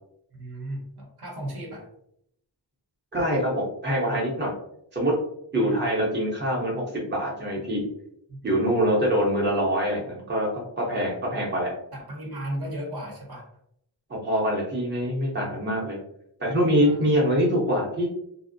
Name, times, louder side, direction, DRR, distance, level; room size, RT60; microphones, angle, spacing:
voice 1, 0.3-1.9 5.5-6.0 8.3-8.8 11.1-11.2 11.9-13.5 15.4-15.8 16.8-17.1, right 1 dB, 60° right, -1 dB, 0.8 m, -36 dB
voice 2, 3.1-4.5 4.9-5.1 5.5-7.9 8.4-11.7 14.2-16.0 16.4-18.1, equal, 25° right, -3 dB, 0.7 m, -24 dB
2.5 x 2.0 x 2.5 m, 0.74 s
wide cardioid pair, 70°, 44 cm